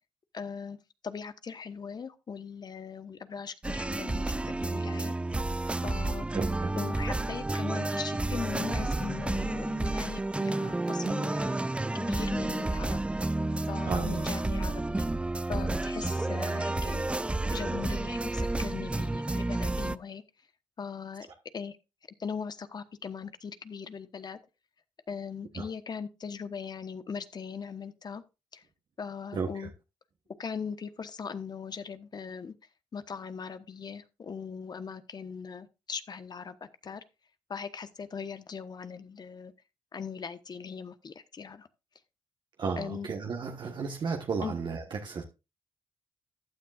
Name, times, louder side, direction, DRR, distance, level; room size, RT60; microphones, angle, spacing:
voice 1, 0.3-0.8 1.0-5.1 5.8-6.3 6.8-11.6 11.9-13.0 13.7-15.1 15.5-20.2 20.8-21.3 21.5-21.8 22.2-24.4 25.1-28.2 28.5-28.6 29.0-29.7 30.4-32.5 32.9-36.6 36.8-37.0 37.5-39.5 39.9-41.7 42.8-43.1 44.4-44.5, left 6 dB, 50° left, 1.1 m, -39 dB
sound 1, 3.6-20.0, right 2 dB, 10° right, 0.4 m, -31 dB
voice 2, 6.3-6.7 13.8-14.2 25.5-25.7 29.3-29.7 42.6-45.2, right 5 dB, 55° right, 1.4 m, -33 dB
14.5 x 9.4 x 2.5 m
supercardioid pair, 55°, 9 cm